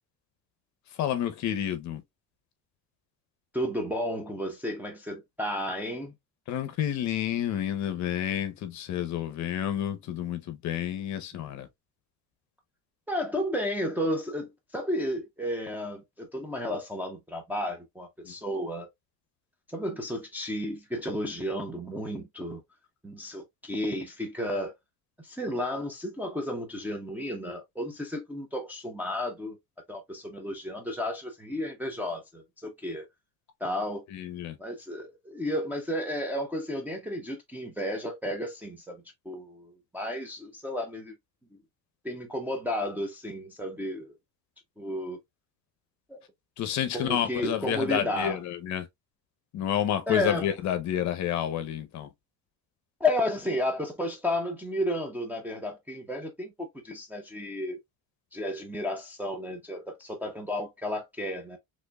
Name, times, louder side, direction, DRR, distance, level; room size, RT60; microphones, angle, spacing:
voice 1, 1.0-2.0 6.5-11.7 18.2-18.3 34.1-34.6 46.6-48.9 49.5-52.1, left 10 dB, 50° left, 0.7 m, -30 dB
voice 2, 3.5-6.1 13.1-18.9 19.7-22.6 23.0-24.7 25.2-29.6 29.9-33.1 33.6-34.0 34.6-41.1 42.0-44.1 44.8-45.2 46.1-46.2 46.9-48.4 50.1-50.5 53.0-57.8 58.3-61.6, left 1 dB, 5° right, 0.5 m, -32 dB
4.3 x 3.0 x 2.3 m
cardioid pair, 165°, 37 cm